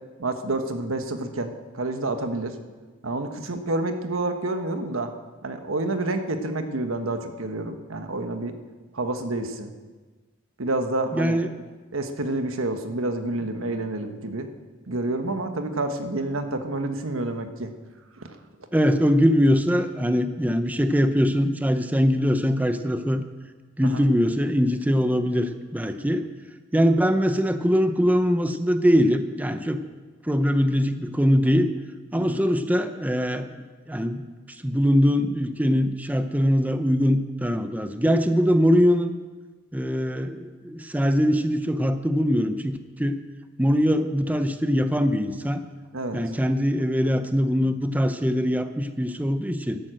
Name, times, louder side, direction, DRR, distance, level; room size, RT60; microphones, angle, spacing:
voice 1, 0.2-2.6 3.0-5.1 5.4-8.6 8.9-9.7 10.6-11.4 11.9-14.5 14.9-17.7 18.2-18.4 23.8-24.0 32.1-32.4 45.9-46.2, right 2 dB, 90° right, 7 dB, 1.3 m, -28 dB
voice 2, 11.1-11.5 18.7-23.2 23.8-26.3 26.7-29.8 30.2-31.7 32.1-33.6 33.9-34.2 34.6-39.1 39.7-43.2 43.6-45.6 46.1-49.8, equal, 10° right, 8 dB, 0.6 m, -22 dB
12.0 x 11.5 x 7.7 m, 1.3 s
head